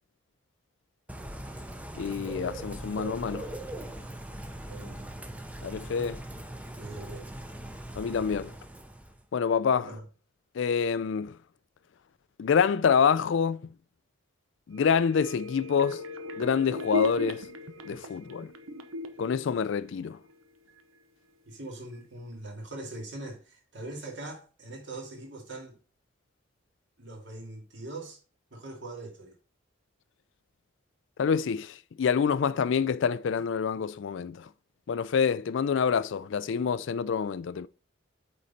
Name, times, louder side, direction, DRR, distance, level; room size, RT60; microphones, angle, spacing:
Bird / Rain, 1.1-9.2, right 1 dB, 5° right, 0.6 m, -40 dB
voice 1, 2.0-3.5 5.6-6.2 8.0-8.5 9.3-9.9 10.6-11.4 12.4-13.6 14.7-16.0 16.4-17.5 17.9-18.5 19.2-20.2 31.2-34.5 34.9-37.7, left 6 dB, 65° left, 0.3 m, -27 dB
voice 2, 4.6-5.0 6.8-7.3 9.9-10.0 21.5-25.8 27.0-28.2 28.5-29.3, right 2 dB, 60° right, 2.3 m, -42 dB
sound 1, 14.7-20.4 20.8-20.9, left 2 dB, 85° right, 0.8 m, -37 dB
8.3 x 4.0 x 4.1 m
head